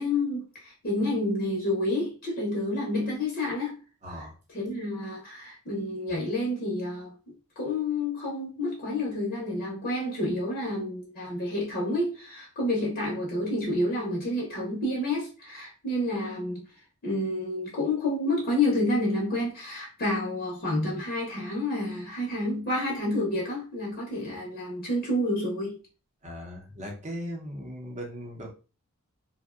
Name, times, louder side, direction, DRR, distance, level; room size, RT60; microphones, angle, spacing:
voice 1, 0.0-3.8 4.1-4.2 4.5-7.1 7.6-16.7 17.0-25.8, left 1 dB, 45° left, 0.6 m, -29 dB
voice 2, 4.0-4.4 11.2-11.3 26.2-28.5, equal, 30° right, 0.6 m, -38 dB
2.6 x 2.1 x 2.3 m
head